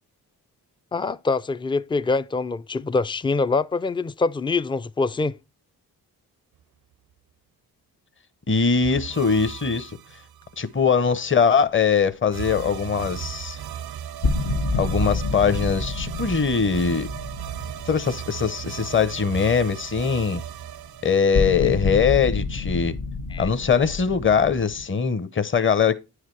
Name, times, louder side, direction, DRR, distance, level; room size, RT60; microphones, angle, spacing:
voice 1, 0.9-5.4 23.3-23.5, left 3 dB, 15° left, 0.4 m, -24 dB
voice 2, 8.5-9.9 10.6-13.6 14.7-17.1 17.9-20.4 21.0-22.9 23.4-26.0, left 6 dB, 30° left, 0.8 m, -21 dB
sound 1, 8.8-10.7 12.3-22.1, right 10 dB, 70° right, 0.6 m, -36 dB
sound 2, 14.2-19.3 19.6-19.7 21.3-24.8, left 3 dB, 80° left, 1.3 m, -28 dB
9.4 x 4.9 x 4.6 m
supercardioid pair, 45°, 40 cm